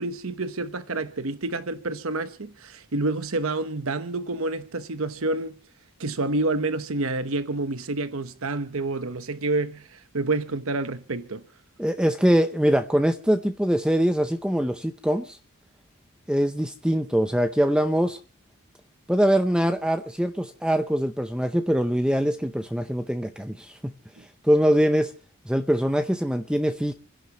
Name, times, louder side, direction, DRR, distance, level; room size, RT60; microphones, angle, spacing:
voice 1, 0.0-5.5 6.0-11.4 24.2-24.3, right 2 dB, 75° right, 1.0 m, -28 dB
voice 2, 11.8-15.4 16.3-18.2 19.1-25.1 25.4-26.9, equal, 5° right, 0.6 m, -23 dB
30.0 x 11.0 x 3.0 m
head